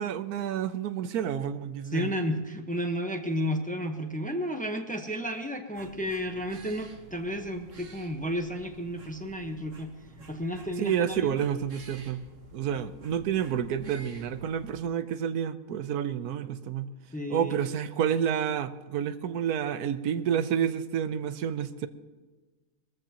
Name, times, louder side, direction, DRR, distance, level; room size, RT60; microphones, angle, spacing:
voice 1, 0.0-2.1 10.8-12.2 12.5-16.9 17.3-21.9, right 8 dB, 90° right, 11 dB, 1.3 m, -29 dB
voice 2, 1.9-9.9 10.3-11.4 17.1-17.6, equal, 5° left, 4 dB, 0.9 m, -32 dB
sound 1, 5.7-14.8, right 1 dB, 55° right, 1.7 m, -51 dB
21.5 x 14.5 x 3.0 m, 1.3 s
omnidirectional pair, 1.5 m